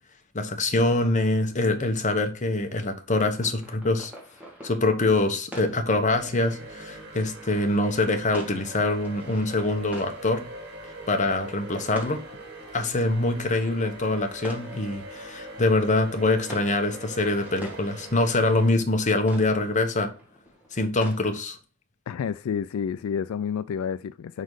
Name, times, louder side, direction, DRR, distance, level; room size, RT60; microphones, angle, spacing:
voice 1, 0.3-4.1 4.6-10.4 11.1-12.2 12.7-20.1 20.7-21.6, left 2 dB, 35° left, 1.0 m, -24 dB
sound 1, 3.2-21.2, equal, 5° right, 1.7 m, -47 dB
sound 2, 6.1-18.7, right 1 dB, 55° right, 2.0 m, -42 dB
voice 2, 22.1-24.4, left 7 dB, 80° left, 0.3 m, -29 dB
5.3 x 4.1 x 4.8 m
head